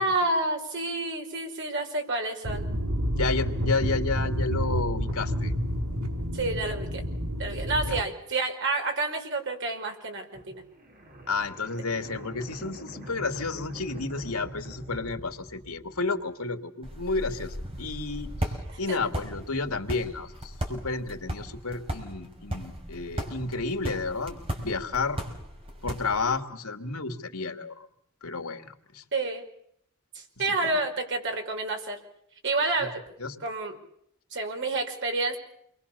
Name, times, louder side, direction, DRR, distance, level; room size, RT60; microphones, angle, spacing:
voice 1, 0.0-2.7 6.3-7.0 7.4-10.6 18.9-19.0 29.1-29.4 30.1-32.0 32.4-33.0 33.4-33.8 34.3-35.4, right 2 dB, 55° right, 4 dB, 5.2 m, -29 dB
sound 1, 2.4-8.0, equal, 90° right, 5.3 m, -29 dB
voice 2, 3.1-5.5 7.9-8.0 11.3-25.2 25.8-27.9 28.2-29.0 30.6-30.7 32.8-32.9 33.2-33.4, left 3 dB, 80° left, 6 dB, 2.8 m, -31 dB
sound 2, 10.3-16.2, right 1 dB, 40° right, 5.0 m, -43 dB
sound 3, 16.8-26.4, equal, 25° right, 5.4 m, -37 dB
28.5 x 22.5 x 7.1 m, 0.71 s
head